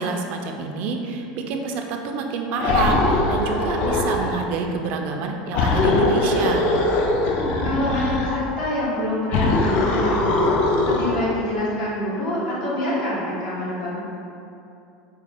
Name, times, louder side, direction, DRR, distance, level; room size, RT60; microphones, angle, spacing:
voice 1, 0.0-6.7, right 4 dB, 55° right, 3 dB, 0.3 m, -28 dB
sound 1, 2.6-4.4 5.5-8.4 9.3-11.3, left 2 dB, 50° left, 0.4 m, -21 dB
voice 2, 7.6-14.0, left 1 dB, 80° left, -7 dB, 1.1 m, -26 dB
3.9 x 2.0 x 3.4 m, 2.7 s
supercardioid pair, 135°, 3 cm